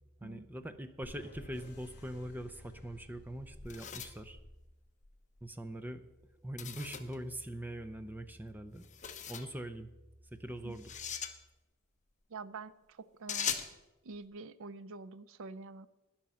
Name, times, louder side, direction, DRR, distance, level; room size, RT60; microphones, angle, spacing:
voice 1, 0.2-4.4 5.4-6.0 6.4-8.8 9.2-9.9 10.3-11.0, right 1 dB, 10° right, 8 dB, 0.7 m, -42 dB
sound 1, 1.0-3.8, left 1 dB, 50° left, 2.8 m, -53 dB
sound 2, 2.9-5.2 6.6-7.2 8.8-9.5 10.7-11.3 13.3-13.7, left 8 dB, 35° left, 1.0 m, -40 dB
voice 2, 12.3-13.6 14.0-15.9, right 3 dB, 65° right, 13 dB, 0.5 m, -47 dB
12.0 x 10.5 x 5.6 m, 1.0 s
head